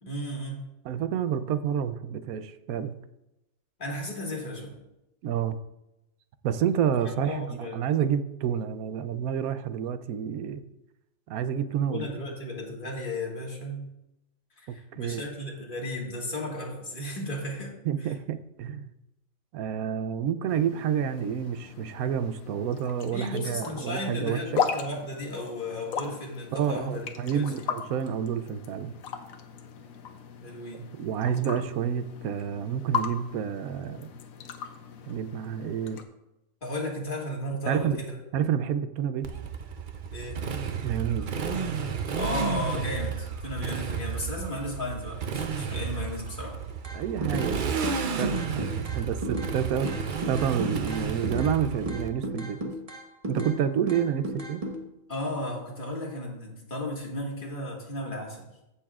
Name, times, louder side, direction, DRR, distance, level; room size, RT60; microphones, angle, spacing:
voice 1, 0.0-0.6 3.8-4.7 7.0-7.8 11.9-13.9 14.6-17.7 18.0-18.1 23.1-27.1 27.3-27.7 30.4-30.8 36.6-38.2 40.1-40.5 42.1-46.6 55.1-58.4, left 1 dB, 35° left, -2 dB, 2.1 m, -34 dB
voice 2, 0.8-2.9 5.2-5.6 6.4-10.6 11.3-12.1 14.9-15.2 17.8-18.9 19.5-24.6 26.5-28.9 31.0-34.1 35.0-36.0 37.7-38.0 38.3-39.3 40.8-41.3 46.9-47.7 48.0-52.6 53.3-54.6, right 8 dB, 80° right, 12 dB, 1.1 m, -29 dB
sound 1, 20.5-36.0, left 6 dB, 70° left, 1.1 m, -37 dB
Motorcycle, 39.2-52.1, right 6 dB, 50° right, 0.6 m, -32 dB
sound 2, 46.8-47.5 47.8-49.5 49.8-51.6 51.9-53.6 53.9-54.8, equal, 25° right, 1.1 m, -34 dB
14.5 x 7.0 x 2.4 m, 0.90 s
omnidirectional pair, 1.5 m